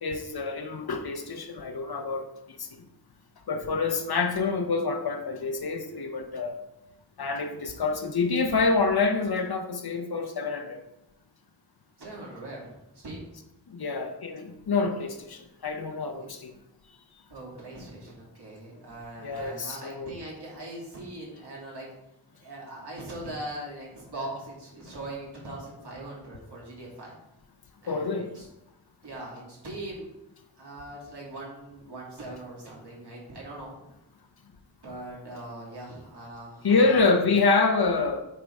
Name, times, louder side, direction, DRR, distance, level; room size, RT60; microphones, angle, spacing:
voice 1, 0.0-2.9 3.5-6.6 7.2-10.8 13.7-16.5 19.2-20.1 27.9-28.3 36.6-38.2, left 4 dB, 70° left, 0.9 m, -27 dB
voice 2, 12.0-13.3 16.1-16.3 17.3-21.9 22.4-27.1 27.8-28.5 29.0-30.1 30.6-33.7 34.8-37.0, right 1 dB, 80° right, 2.8 m, -41 dB
8.8 x 3.8 x 4.6 m
wide cardioid pair, 80°, 39 cm